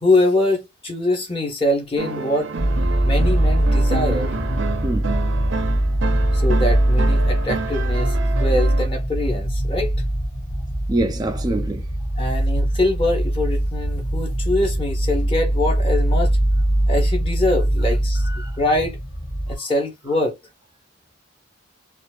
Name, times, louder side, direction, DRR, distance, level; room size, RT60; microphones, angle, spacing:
voice 1, 0.0-2.5 3.0-4.3 6.3-9.9 12.2-16.4 16.9-19.0 19.5-20.4, left 2 dB, 25° left, 1.2 m, -23 dB
sound 1, 2.0-8.9, right 4 dB, 60° right, 0.6 m, -29 dB
sound 2, 2.6-19.6, right 1 dB, 55° left, 2.1 m, -21 dB
voice 2, 4.8-5.3 10.9-11.9 18.2-18.6, right 2 dB, 20° right, 0.4 m, -26 dB
4.2 x 2.5 x 2.3 m
head